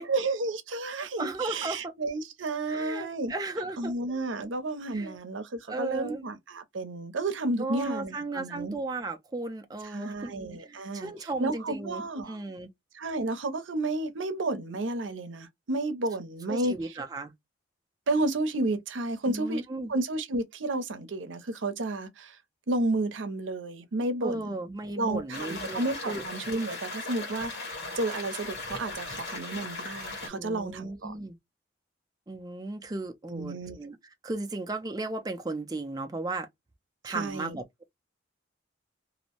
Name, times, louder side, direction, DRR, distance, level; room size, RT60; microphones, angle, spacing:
voice 1, 0.1-3.3 3.8-8.7 9.8-11.1 11.4-12.4 12.9-17.0 18.1-19.6 19.9-22.4 22.7-24.5 25.0-27.7 28.0-31.1 33.2-33.8 37.1-37.6, right 2 dB, 85° right, 0.6 m, -31 dB
voice 2, 1.0-1.9 2.7-3.9 4.9-5.2 5.7-6.3 7.6-10.3 10.6-12.7 16.5-17.3 19.3-19.9 24.2-26.2 30.3-31.4 32.3-34.0 34.2-36.5 37.0-37.6, right 2 dB, 20° right, 0.4 m, -35 dB
sound 1, 25.3-30.3, left 3 dB, 60° left, 1.2 m, -38 dB
2.6 x 2.1 x 2.8 m
head